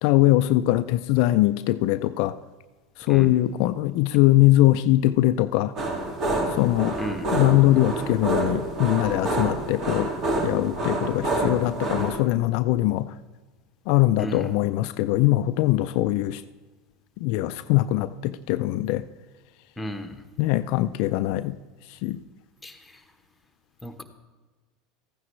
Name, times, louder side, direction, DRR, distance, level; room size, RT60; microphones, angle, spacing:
voice 1, 0.0-2.3 3.1-5.7 6.6-7.0 7.3-10.1 10.4-13.1 13.9-16.4 17.2-19.0 20.4-21.5 22.0-22.2, left 16 dB, 65° left, 11 dB, 0.3 m, -21 dB
voice 2, 3.1-3.4 7.0-7.3 14.2-14.5 19.8-20.2 22.6-23.0 23.8-24.0, equal, 5° left, 5 dB, 1.2 m, -34 dB
sound 1, 5.8-12.2, right 2 dB, 45° right, 2.2 m, -27 dB
14.0 x 9.4 x 3.2 m, 1.3 s
hypercardioid pair, 95°, 0 cm